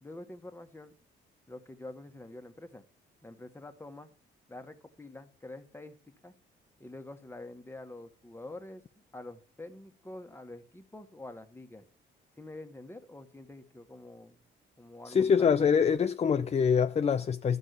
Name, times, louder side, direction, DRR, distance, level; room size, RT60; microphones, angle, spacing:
voice 1, 0.0-0.9 1.5-2.8 3.2-4.1 4.5-6.3 6.8-11.8 12.4-14.4 14.8-15.7, left 2 dB, 10° left, 1.5 m, -47 dB
voice 2, 15.1-17.6, left 6 dB, 35° left, 0.5 m, -25 dB
13.0 x 5.5 x 8.2 m
cardioid pair, 90°, 20 cm